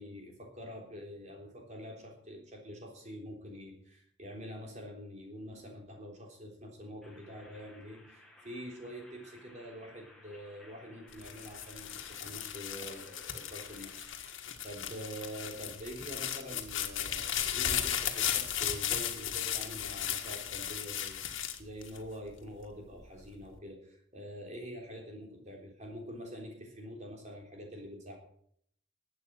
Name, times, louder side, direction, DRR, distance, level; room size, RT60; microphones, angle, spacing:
voice 1, 0.0-28.2, equal, 35° right, 1 dB, 3.5 m, -46 dB
sound 1, 7.0-14.1, left 1 dB, 5° left, 2.2 m, -59 dB
sound 2, 11.1-22.5 23.0-23.6, left 10 dB, 90° left, 1.6 m, -36 dB
12.0 x 8.4 x 7.6 m, 0.66 s
head